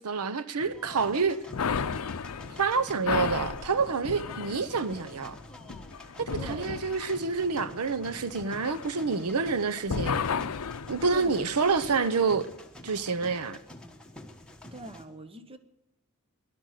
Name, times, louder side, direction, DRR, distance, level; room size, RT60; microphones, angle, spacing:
voice 1, 0.0-1.4 2.6-5.4 6.2-10.2 10.9-12.5 12.8-13.6, right 4 dB, 80° right, 0.8 m, -28 dB
sound 1, 0.6-15.1, left 1 dB, 5° left, 1.4 m, -48 dB
sound 2, 1.5-9.5 9.8-12.2, left 6 dB, 70° left, 0.6 m, -34 dB
voice 2, 6.4-6.8 11.1-11.4 14.7-15.6, right 2 dB, 25° right, 1.0 m, -43 dB
18.0 x 11.5 x 6.6 m
head